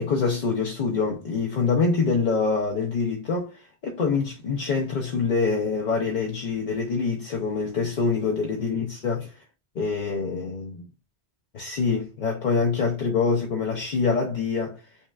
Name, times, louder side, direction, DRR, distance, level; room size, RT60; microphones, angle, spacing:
voice 1, 0.0-9.4 9.8-10.9 11.5-14.8, left 4 dB, 55° left, 0.6 m, -25 dB
5.3 x 2.4 x 2.2 m
omnidirectional pair, 1.2 m